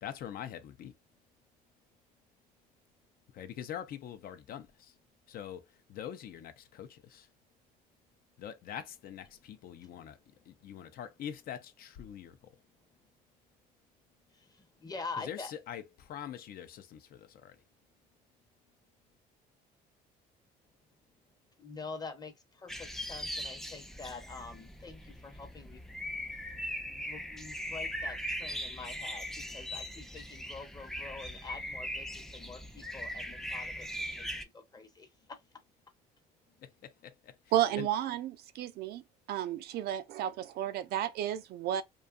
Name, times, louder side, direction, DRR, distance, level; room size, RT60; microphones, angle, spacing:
voice 1, 0.0-0.9 3.3-5.0 5.3-7.3 8.4-10.2 10.4-12.6 15.2-17.6 36.6-37.9, left 9 dB, 60° left, 0.5 m, -44 dB
voice 2, 14.3-15.5 21.6-25.8 26.8-35.4, left 4 dB, 25° left, 0.7 m, -46 dB
sound 1, 22.7-34.4, equal, ahead, 0.4 m, -40 dB
voice 3, 37.5-39.0 39.3-41.8, right 11 dB, 70° right, 0.4 m, -32 dB
2.6 x 2.3 x 2.3 m
cardioid pair, 110°, 17 cm